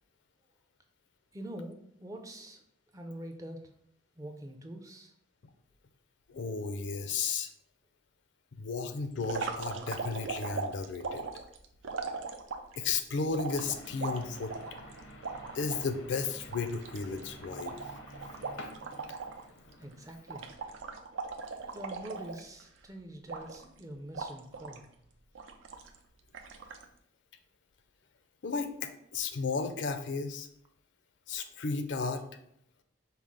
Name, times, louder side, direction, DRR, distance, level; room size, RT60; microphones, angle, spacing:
voice 1, 1.3-2.6 2.9-3.7 4.2-5.1 19.8-20.5 21.7-24.9, right 1 dB, 15° right, 3 dB, 0.4 m, -44 dB
voice 2, 6.3-7.5 8.6-11.2 12.8-14.5 15.5-17.8 28.4-30.5 31.3-32.2, left 4 dB, 70° left, 8 dB, 0.5 m, -34 dB
sound 1, 9.2-12.8 13.3-15.8 16.2-16.3 16.5-19.4 19.7-19.9 20.3-22.8 23.3-23.8 24.1-24.8 25.4-26.0 26.3-26.8, right 4 dB, 80° right, 0.5 m, -39 dB
sound 2, 13.5-20.8, equal, 90° left, 0.8 m, -50 dB
5.6 x 2.0 x 4.7 m, 0.70 s
head